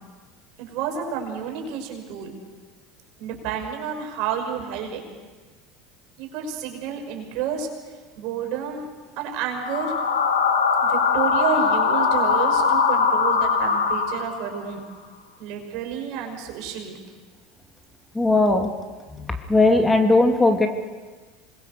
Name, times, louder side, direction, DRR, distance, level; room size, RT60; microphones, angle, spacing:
voice 1, 0.6-2.3 3.2-5.0 6.2-7.7 8.2-8.9 9.2-10.0 10.8-14.8 15.4-17.0, right 7 dB, 60° right, 3 dB, 5.8 m, -30 dB
sound 1, 9.5-14.6, left 5 dB, 90° left, 2.5 m, -21 dB
voice 2, 18.2-18.7 19.2-20.7, left 2 dB, 10° left, 4 dB, 2.5 m, -18 dB
27.0 x 21.5 x 6.7 m, 1.4 s
hypercardioid pair, 80°, 0 cm